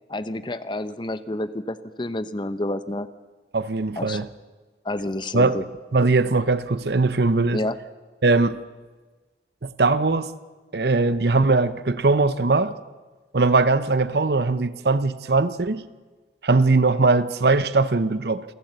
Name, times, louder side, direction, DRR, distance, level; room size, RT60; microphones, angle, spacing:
voice 1, 0.1-3.1 4.0-4.3 4.8-5.6 7.5-7.8, left 1 dB, 25° left, 0.7 m, -29 dB
voice 2, 3.5-4.3 5.3-5.6 5.9-7.6 8.2-8.6 9.6-10.3 10.7-12.7 13.3-15.9 16.4-18.4, right 3 dB, 65° right, 0.8 m, -20 dB
28.0 x 12.0 x 8.0 m
head